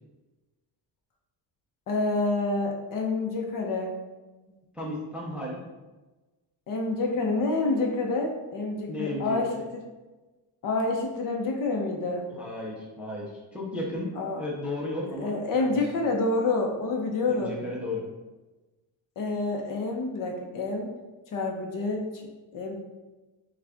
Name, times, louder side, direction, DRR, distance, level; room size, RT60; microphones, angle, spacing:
voice 1, 1.9-4.0 6.7-9.8 10.6-12.3 14.2-14.4 15.1-17.6 19.2-20.9 21.3-22.3 22.5-22.7, left 3 dB, 50° left, 1 dB, 0.8 m, -28 dB
voice 2, 4.7-5.6 8.9-9.7 12.3-15.8 17.3-18.0, left 1 dB, 5° right, -5 dB, 0.5 m, -34 dB
6.3 x 2.5 x 3.4 m, 1.2 s
cardioid pair, 170°, 43 cm